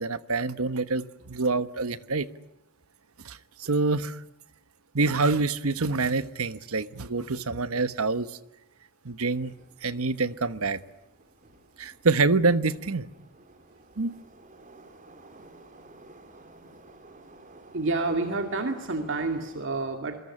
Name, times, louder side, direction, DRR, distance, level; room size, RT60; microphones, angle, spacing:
voice 1, 0.0-2.3 3.2-4.2 4.9-8.3 9.0-9.5 9.8-10.8 11.8-13.1 14.0-14.1, right 3 dB, 85° right, 13 dB, 1.2 m, -26 dB
Subway metro underground, 9.3-19.7, right 2 dB, 40° right, 3.3 m, -53 dB
voice 2, 17.7-20.2, right 3 dB, 60° right, 5 dB, 2.3 m, -29 dB
27.0 x 22.0 x 10.0 m, 0.84 s
head